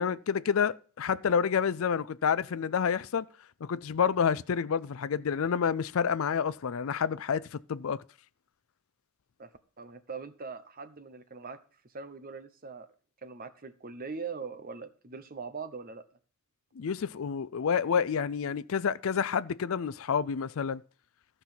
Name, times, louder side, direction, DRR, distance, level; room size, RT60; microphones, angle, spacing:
voice 1, 0.0-3.3 3.6-8.0 16.8-20.8, left 7 dB, 65° left, 0.4 m, -29 dB
voice 2, 9.8-11.6 11.9-12.9 13.2-16.0, right 5 dB, 40° right, 0.9 m, -41 dB
14.5 x 5.5 x 6.0 m
head